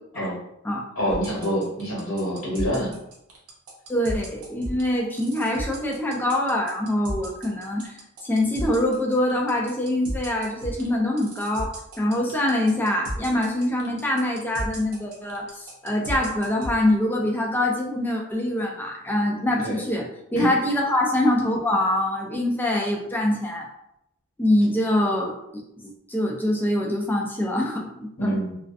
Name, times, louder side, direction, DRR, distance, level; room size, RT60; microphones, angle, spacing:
voice 1, 1.0-2.9 19.6-19.8 20.3-20.5 28.2-28.6, equal, 90° left, -6 dB, 1.0 m, -26 dB
sound 1, 1.1-16.8, right 1 dB, 80° right, 0.7 m, -34 dB
voice 2, 3.9-7.9 8.2-23.7 24.4-25.6 26.1-28.4, left 1 dB, 10° left, 0 dB, 0.3 m, -24 dB
2.4 x 2.2 x 2.4 m, 0.81 s
head